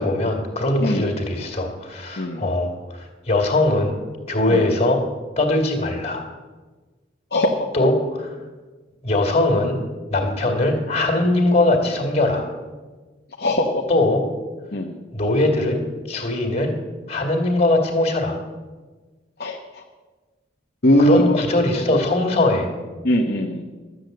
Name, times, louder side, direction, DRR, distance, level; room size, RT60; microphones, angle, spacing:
voice 1, 0.0-4.0 4.3-5.0 5.4-6.2 7.7-8.3 9.0-9.8 10.1-12.5 13.9-14.2 15.1-15.8 16.1-16.7 17.1-18.4 21.0-22.7, left 2 dB, 30° left, 3 dB, 2.3 m, -20 dB
voice 2, 2.2-2.5 4.5-4.6 7.3-7.5 13.4-13.8 14.7-15.0 19.4-19.8 20.8-21.4 21.7-22.0 23.0-23.6, left 1 dB, 50° left, 0 dB, 1.0 m, -20 dB
12.5 x 8.0 x 7.8 m, 1.3 s
head